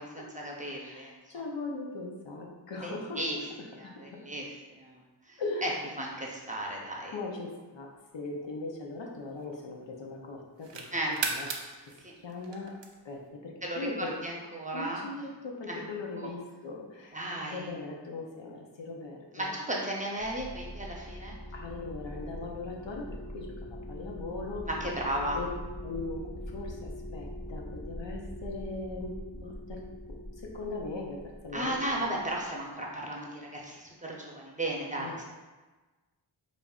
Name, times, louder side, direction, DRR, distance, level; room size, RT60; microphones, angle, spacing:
voice 1, 0.0-1.4 2.8-3.4 3.7-5.0 5.3-5.7 6.0-7.2 10.9-11.2 12.0-12.1 13.6-13.9 14.2-15.0 15.7-15.8 16.2-16.3 17.1-17.7 19.3-21.4 24.7-25.4 31.5-35.2, right 1 dB, 20° right, -2 dB, 0.6 m, -35 dB
voice 2, 0.8-4.2 5.4-5.8 7.1-10.9 11.3-11.5 11.8-11.9 12.2-12.8 13.0-14.2 14.7-19.5 21.5-24.7 25.3-25.5 25.8-29.8 30.1-32.0 35.0-35.2, left 3 dB, 80° left, 0 dB, 0.7 m, -39 dB
sound 1, 8.1-9.8 10.3-13.3, right 4 dB, 75° right, 0.5 m, -38 dB
sound 2, 20.2-32.4, left 1 dB, 35° left, 0.9 m, -42 dB
5.1 x 2.5 x 2.3 m, 1.2 s
wide cardioid pair, 50°, 44 cm